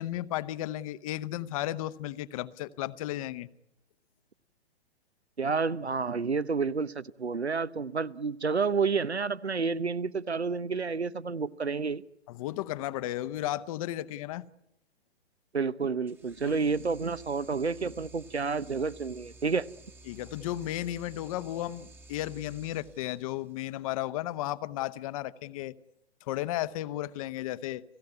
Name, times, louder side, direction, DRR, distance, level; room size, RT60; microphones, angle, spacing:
voice 1, 0.0-3.5 12.3-14.5 16.5-16.6 20.1-25.7 26.3-27.8, left 14 dB, 35° left, 0.9 m, -34 dB
voice 2, 5.4-12.0 15.5-19.7, right 4 dB, 85° right, 0.9 m, -30 dB
sound 1, 16.1-23.7, right 2 dB, 5° right, 1.2 m, -53 dB
30.0 x 15.5 x 9.6 m
figure-of-eight pair, 120°, 32 cm